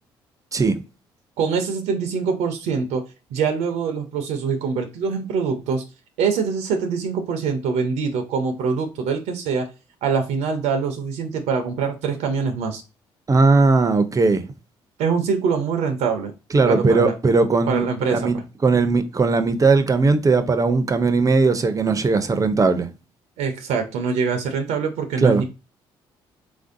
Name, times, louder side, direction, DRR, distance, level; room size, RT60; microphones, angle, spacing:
voice 1, 1.4-3.0 3.3-5.8 6.2-9.7 10.0-12.8 15.0-16.3 16.6-17.1 17.7-18.4 23.4-25.4, right 5 dB, 80° right, 0.5 m, -24 dB
voice 2, 13.3-14.4 16.5-17.8 18.1-18.4 18.6-22.9 25.2-25.4, right 3 dB, 30° right, 0.5 m, -18 dB
3.2 x 2.6 x 2.5 m
supercardioid pair, 60°, 11 cm